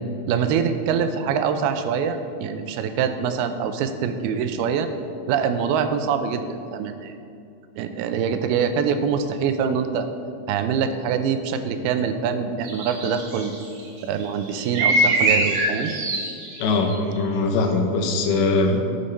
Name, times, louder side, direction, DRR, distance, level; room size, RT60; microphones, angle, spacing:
voice 1, 0.3-4.9 5.3-7.1 7.8-10.1 10.5-13.5 14.0-15.9, right 7 dB, 90° right, 9 dB, 2.6 m, -24 dB
sound 1, 12.6-13.8 14.2-17.0, right 1 dB, 65° right, 2.4 m, -22 dB
voice 2, 16.6-18.8, left 3 dB, 80° left, 4 dB, 2.9 m, -21 dB
11.5 x 8.0 x 4.3 m, 2.5 s
omnidirectional pair, 4.4 m